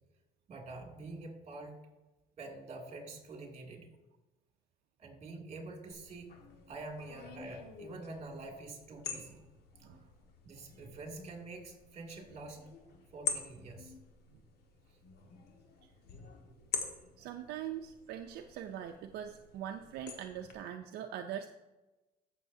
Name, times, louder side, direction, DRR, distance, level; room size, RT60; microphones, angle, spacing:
voice 1, 0.5-1.8 2.4-3.9 5.0-6.3 6.7-9.4 10.4-12.7 13.1-13.9, right 2 dB, 40° right, 2 dB, 2.4 m, -46 dB
sound 1, 5.9-20.5, left 6 dB, 70° left, 1.6 m, -46 dB
voice 2, 17.2-21.5, right 10 dB, 75° right, 5 dB, 0.5 m, -42 dB
15.0 x 6.5 x 2.7 m, 1.1 s
cardioid pair, 110°, 17 cm